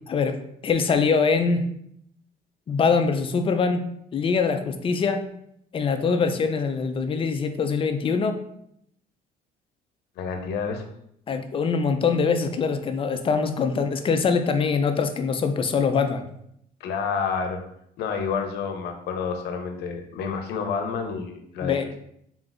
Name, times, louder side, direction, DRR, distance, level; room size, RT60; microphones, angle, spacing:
voice 1, 0.6-1.6 2.7-3.8 4.1-5.2 5.7-8.4 11.3-16.2 21.6-21.9, left 5 dB, 30° left, 7 dB, 0.5 m, -23 dB
voice 2, 10.2-10.9 16.8-17.6 18.0-22.0, left 5 dB, 80° left, 5 dB, 0.7 m, -29 dB
3.8 x 2.4 x 3.9 m, 0.73 s
cardioid pair, 110°, 17 cm